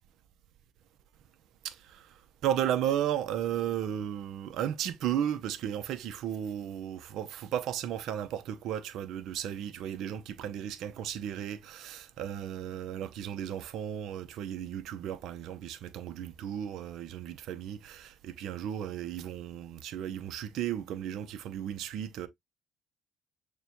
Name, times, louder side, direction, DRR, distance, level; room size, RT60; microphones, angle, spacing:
voice 1, 1.6-2.1 2.4-22.3, right 10 dB, 70° right, 0.5 m, -34 dB
6.6 x 2.2 x 2.9 m
supercardioid pair, 90°, 0 cm